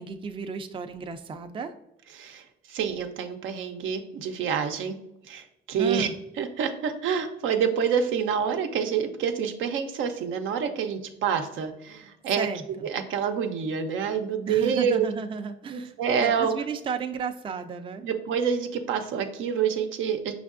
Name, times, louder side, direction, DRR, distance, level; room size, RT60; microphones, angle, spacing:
voice 1, 0.0-1.7 5.8-6.1 12.4-12.9 14.5-15.9 16.2-18.0, right 6 dB, 25° right, 7 dB, 0.4 m, -33 dB
voice 2, 2.1-5.0 5.3-6.1 6.4-12.5 12.9-15.1 15.7-16.5 18.0-20.3, right 7 dB, 80° right, 6 dB, 0.6 m, -27 dB
5.3 x 3.3 x 2.5 m, 0.82 s
cardioid pair, 90°, 20 cm